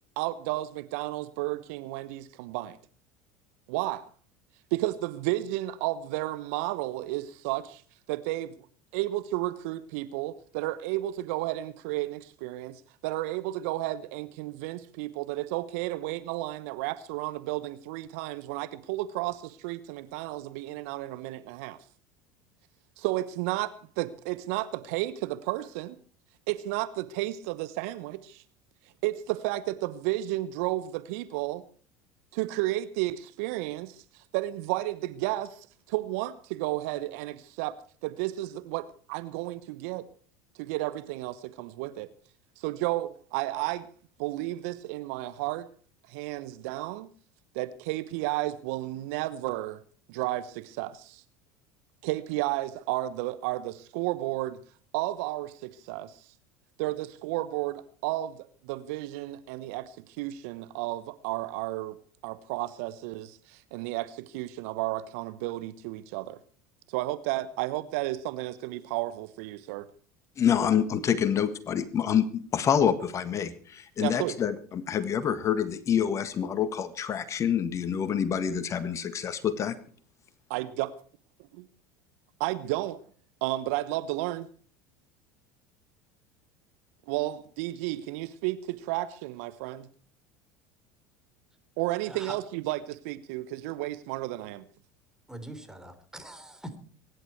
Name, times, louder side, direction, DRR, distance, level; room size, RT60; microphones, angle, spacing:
voice 1, 0.2-2.8 3.7-4.1 4.7-7.8 8.1-8.5 8.9-21.8 23.0-26.0 26.5-28.4 29.0-31.6 32.3-34.0 34.3-37.8 38.0-40.0 40.6-42.1 42.6-43.9 44.2-45.7 46.1-47.1 47.5-49.8 50.1-51.2 52.0-54.6 54.9-56.2 56.8-58.4 58.6-62.0 62.2-66.4 66.9-69.9 74.0-74.4 80.5-80.9 82.4-83.0 83.4-84.5 87.1-89.9 91.8-94.6, right 17 dB, 65° right, 1.0 m, -32 dB
voice 2, 70.4-79.8, left 8 dB, 35° left, 1.6 m, -27 dB
voice 3, 95.3-96.8, right 1 dB, 5° right, 3.9 m, -42 dB
23.0 x 11.0 x 4.6 m
hypercardioid pair, 75°, 8 cm